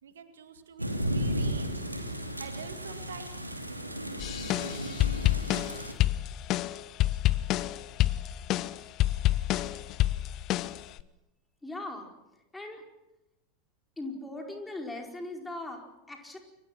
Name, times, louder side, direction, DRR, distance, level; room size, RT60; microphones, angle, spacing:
voice 1, 0.0-1.8 2.4-3.4, right 6 dB, 65° right, 8 dB, 2.1 m, -46 dB
sound 1, 0.8-5.9, equal, 85° right, 2.5 m, -34 dB
sound 2, 4.2-11.0, left 15 dB, 40° left, 0.8 m, -28 dB
voice 2, 11.6-12.8 14.0-16.4, left 2 dB, 10° left, 2 dB, 4.8 m, -40 dB
29.0 x 23.0 x 6.0 m, 0.96 s
figure-of-eight pair, 85°, 0 cm